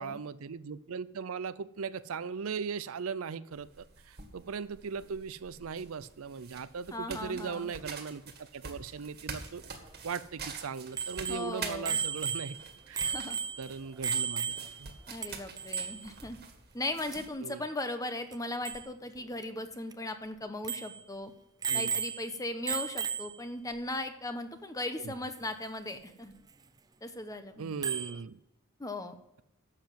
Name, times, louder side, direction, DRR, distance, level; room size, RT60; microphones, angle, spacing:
voice 1, 0.0-9.6 10.0-12.6 12.9-13.1 13.6-14.9 17.4-17.6 21.7-22.0 25.0-25.1 27.6-28.4, right 5 dB, 65° right, 16 dB, 0.5 m, -38 dB
sound 1, 3.5-17.3, right 5 dB, 45° right, 1.9 m, -46 dB
voice 2, 6.9-7.7 11.3-12.0 13.0-13.4 15.1-16.4 16.7-21.3 21.7-26.3 27.0-27.7 28.8-29.2, left 2 dB, 15° left, 8 dB, 1.0 m, -38 dB
Bicycle bell, 11.0-14.9 15.2-15.3 15.6-16.1 18.3-18.4 18.7-18.9 19.4-19.5 19.9-20.0 20.6-21.0 21.6-22.4 22.7-23.5 25.3-25.4 27.8-28.2, right 7 dB, 20° right, 0.5 m, -34 dB
11.5 x 7.7 x 7.6 m, 0.84 s
head